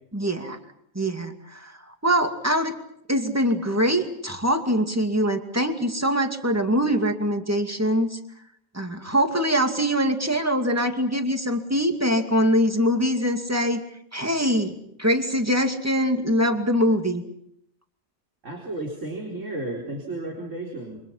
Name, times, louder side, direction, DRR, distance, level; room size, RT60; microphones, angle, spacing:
voice 1, 0.1-0.6 0.9-1.7 2.0-2.7 3.1-8.2 8.7-13.8 14.1-17.2, equal, 10° right, 5 dB, 2.4 m, -23 dB
voice 2, 18.4-21.0, right 2 dB, 70° right, -1 dB, 4.5 m, -33 dB
28.5 x 25.5 x 5.8 m, 0.74 s
omnidirectional pair, 1.3 m